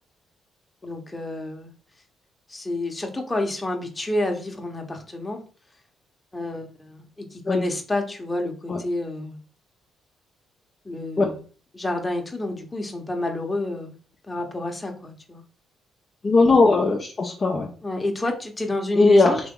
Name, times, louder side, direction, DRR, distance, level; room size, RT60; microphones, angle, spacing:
voice 1, 0.8-1.7 2.5-5.4 6.3-9.4 10.8-11.4 11.7-13.9 14.3-15.4 17.8-19.4, left 2 dB, 15° left, 2 dB, 1.0 m, -29 dB
voice 2, 16.2-17.7 19.0-19.3, left 3 dB, 35° left, 0 dB, 0.7 m, -18 dB
3.8 x 3.0 x 3.7 m, 0.39 s
cardioid pair, 90°, 0 cm